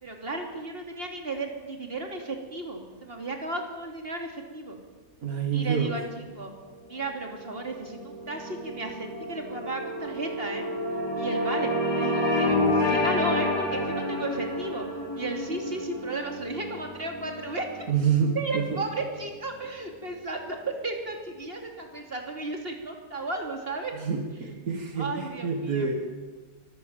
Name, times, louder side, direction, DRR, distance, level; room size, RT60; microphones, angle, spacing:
voice 1, 0.0-4.8 5.5-6.5 6.9-10.6 11.2-14.8 15.2-17.8 18.3-23.9 25.0-25.9, right 2 dB, 40° right, 3 dB, 3.3 m, -34 dB
voice 2, 5.2-6.0 17.9-18.8 23.9-25.9, right 6 dB, 75° right, 4 dB, 2.4 m, -27 dB
sound 1, 6.7-19.3, left 1 dB, 15° left, 5.8 m, -30 dB
24.0 x 14.0 x 9.1 m, 1.4 s
omnidirectional pair, 1.5 m